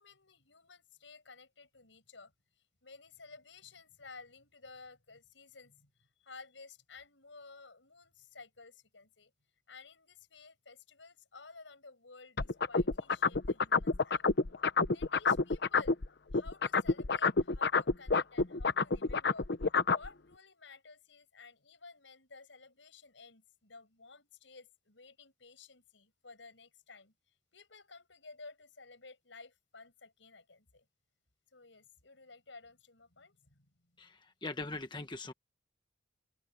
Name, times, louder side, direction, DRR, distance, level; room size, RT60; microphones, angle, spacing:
voice 1, 0.0-2.3 2.8-9.3 9.7-14.2 14.9-16.0 16.3-19.5 19.9-27.1 27.5-30.8 31.5-34.1, left 4 dB, 90° left, 5.9 m, -54 dB
sound 1, 12.4-16.1 16.3-20.1, left 4 dB, 65° left, 0.9 m, -28 dB
voice 2, 34.0-35.3, left 2 dB, 25° left, 1.3 m, -41 dB
open air
head